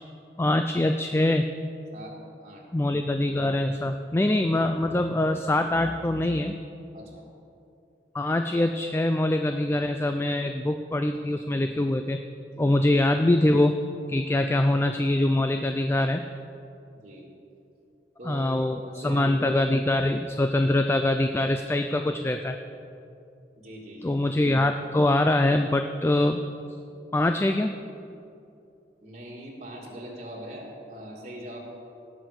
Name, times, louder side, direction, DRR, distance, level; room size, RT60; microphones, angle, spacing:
voice 1, 0.4-1.4 2.7-6.6 8.1-12.2 12.6-13.7 14.1-16.2 18.2-22.6 24.0-26.4 27.1-27.8, left 1 dB, 15° left, 7 dB, 0.3 m, -24 dB
voice 2, 1.9-2.7 6.9-7.2 12.5-12.8 16.9-17.3 18.2-19.5 23.6-24.2 29.0-31.6, right 1 dB, 40° right, -4 dB, 1.8 m, -41 dB
17.5 x 6.2 x 6.4 m, 2.7 s
head